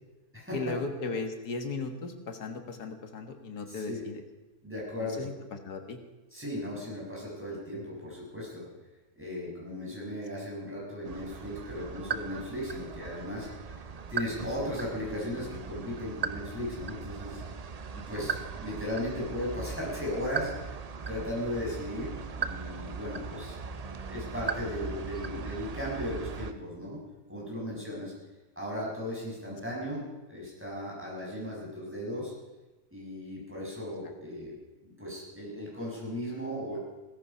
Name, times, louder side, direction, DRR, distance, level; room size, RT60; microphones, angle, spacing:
voice 1, 0.5-4.2 5.0-6.0 18.0-18.3 33.7-33.8, left 3 dB, 85° left, 6 dB, 2.1 m, -37 dB
voice 2, 3.7-4.0 4.6-5.3 6.3-8.6 9.2-13.8 14.1-17.4 18.1-20.8 21.1-27.0 27.3-28.1 28.6-32.3 32.9-34.6 34.8-36.8, left 1 dB, 5° right, -5 dB, 6.1 m, -36 dB
sound 1, 11.0-26.5, right 5 dB, 60° right, 0.4 m, -38 dB
16.5 x 13.5 x 5.6 m, 1.1 s
omnidirectional pair, 1.6 m